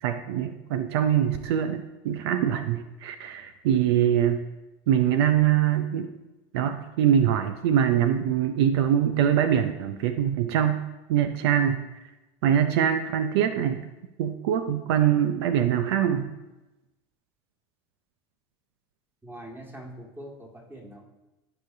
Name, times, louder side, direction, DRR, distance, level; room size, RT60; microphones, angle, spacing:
voice 1, 0.0-4.4 4.9-6.1 6.5-10.8 11.1-11.9 12.4-13.8 14.2-16.3, right 9 dB, 75° right, 9 dB, 0.5 m, -23 dB
voice 2, 19.2-21.0, right 1 dB, 15° right, 0 dB, 1.9 m, -43 dB
13.5 x 5.0 x 2.7 m, 1.0 s
hypercardioid pair, 100°, 13 cm